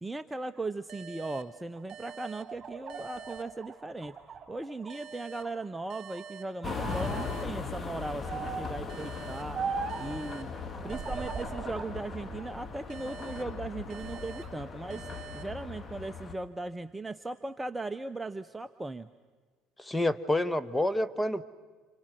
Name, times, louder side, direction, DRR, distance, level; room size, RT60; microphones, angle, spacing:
voice 1, 0.0-4.2 4.5-9.6 10.0-10.5 10.8-15.1 15.3-19.1, right 2 dB, 10° right, 11 dB, 0.8 m, -38 dB
sound 1, 0.9-4.2 4.9-8.2 8.9-12.2 12.9-16.2, right 6 dB, 65° right, 0.8 m, -49 dB
sound 2, 1.7-5.0 5.3-6.2 6.6-7.3 8.3-8.8 9.5-10.1 10.8-11.9 12.4-13.3 13.8-14.5, right 5 dB, 30° right, 7.7 m, -39 dB
sound 3, 6.6-16.3, left 5 dB, 30° left, 2.1 m, -39 dB
voice 2, 19.8-21.4, left 1 dB, 10° left, 15 dB, 1.3 m, -28 dB
29.5 x 28.0 x 6.1 m, 1.5 s
hypercardioid pair, 70°, 0 cm